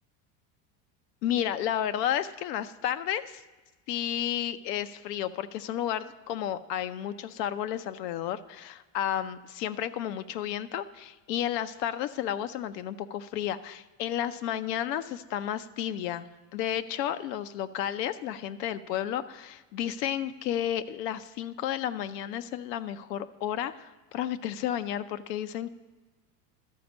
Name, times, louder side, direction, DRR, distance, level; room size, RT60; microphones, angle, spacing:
voice 1, 1.2-3.4 3.9-16.3 16.5-25.7, left 10 dB, 85° left, 11 dB, 0.6 m, -32 dB
12.5 x 4.3 x 6.0 m, 1.2 s
supercardioid pair, 110°, 48 cm